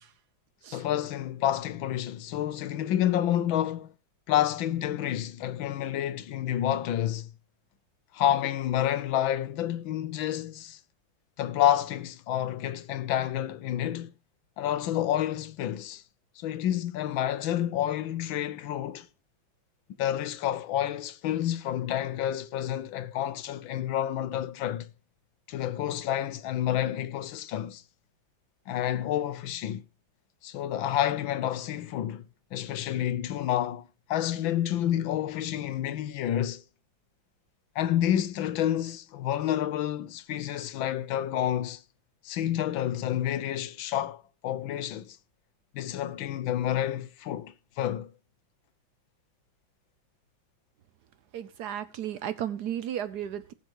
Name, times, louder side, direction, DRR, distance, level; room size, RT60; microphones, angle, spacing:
voice 1, 0.7-3.9 4.3-7.3 8.1-10.8 11.4-14.1 14.6-16.0 16.4-19.1 20.0-24.9 25.5-27.8 28.7-29.8 30.4-32.3 32.5-36.6 37.7-41.8 42.2-45.2 45.7-48.1, left 11 dB, 75° left, 1.5 m, -29 dB
voice 2, 51.3-53.5, right 10 dB, 65° right, 1.1 m, -34 dB
19.5 x 6.8 x 3.0 m
omnidirectional pair, 2.2 m